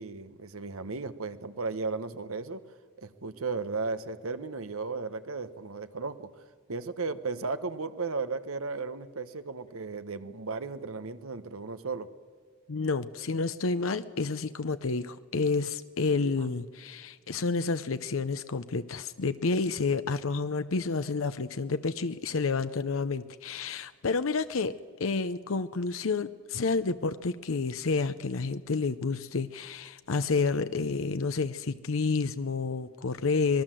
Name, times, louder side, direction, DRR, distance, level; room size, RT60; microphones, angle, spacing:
voice 1, 0.0-2.6 3.0-6.3 6.7-12.1, right 4 dB, 85° right, 11 dB, 1.2 m, -35 dB
voice 2, 12.7-24.7 25.0-33.6, left 4 dB, 70° left, 11 dB, 0.7 m, -29 dB
26.0 x 19.5 x 7.6 m, 1.6 s
head